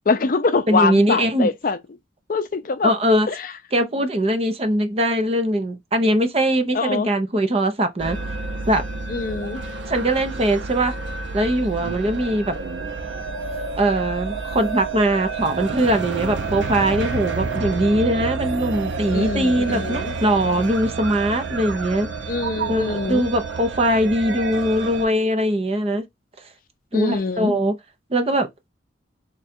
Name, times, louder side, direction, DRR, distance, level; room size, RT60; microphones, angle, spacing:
voice 1, 0.1-1.8 2.3-2.9 3.3-3.4 6.7-7.1 9.1-9.6 19.1-20.1 22.3-23.3 26.9-27.6, left 4 dB, 45° left, 0.5 m, -23 dB
voice 2, 0.7-1.5 2.8-3.3 3.7-8.2 8.7-8.8 9.9-11.0 11.3-12.5 13.8-22.1 22.7-26.0 26.9-27.8 28.1-28.5, right 1 dB, 30° right, 0.6 m, -21 dB
sound 1, 8.0-25.1, right 4 dB, 80° right, 0.7 m, -29 dB
3.8 x 2.3 x 4.2 m
head